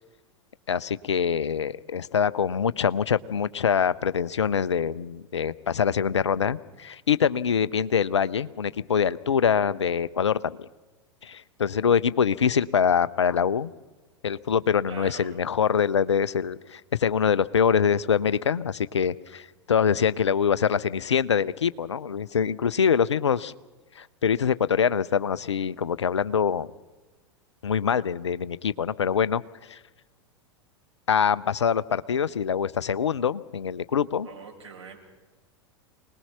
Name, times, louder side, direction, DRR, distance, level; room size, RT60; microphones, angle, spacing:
voice 1, 0.7-10.7 11.2-13.7 14.2-23.5 24.0-26.7 27.6-29.4 29.7-29.8 31.1-34.3, left 7 dB, 75° left, 18 dB, 0.6 m, -24 dB
voice 2, 14.9-15.4 34.2-35.0, right 5 dB, 70° right, -1 dB, 5.6 m, -43 dB
25.0 x 19.5 x 5.8 m, 1.2 s
figure-of-eight pair, 90°, 15 cm